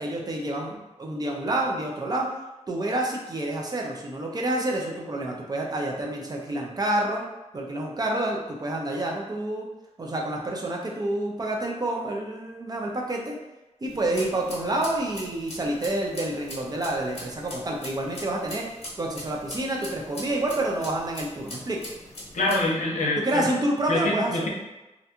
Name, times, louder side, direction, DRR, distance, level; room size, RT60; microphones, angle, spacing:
voice 1, 0.0-2.3 2.7-7.2 7.5-9.7 10.0-13.4 13.8-18.7 19.0-21.8 23.2-24.5, right 1 dB, 30° right, -1 dB, 0.4 m, -28 dB
sound 1, 13.9-22.6, left 1 dB, 55° left, 0.9 m, -42 dB
voice 2, 22.3-23.4 23.9-24.5, left 2 dB, 80° left, -2 dB, 0.6 m, -25 dB
2.5 x 2.2 x 2.8 m, 1.0 s
wide cardioid pair, 140°, 12 cm